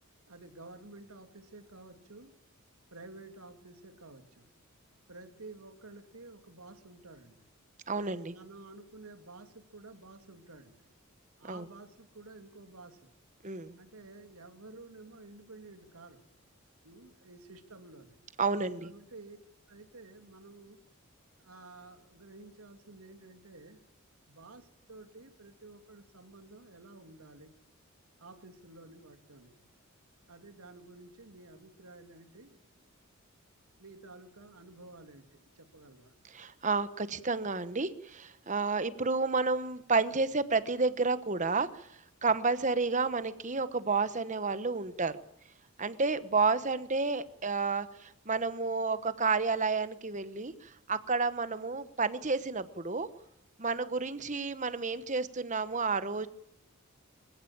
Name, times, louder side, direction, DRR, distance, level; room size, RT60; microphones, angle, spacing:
voice 1, 0.3-2.4 2.9-4.5 5.1-7.4 8.3-10.8 11.4-13.1 13.8-16.3 16.8-18.2 18.8-19.4 19.7-20.8 21.4-23.8 24.3-27.5 28.2-29.6 30.3-32.8 33.8-36.1, right 2 dB, 85° right, 7 dB, 2.8 m, -52 dB
voice 2, 7.9-8.3 11.5-11.7 13.4-13.8 18.4-18.9 36.3-41.7 42.2-45.2 45.8-53.1 53.6-56.3, right 4 dB, 35° right, 13 dB, 1.2 m, -30 dB
25.0 x 16.0 x 8.8 m, 0.79 s
head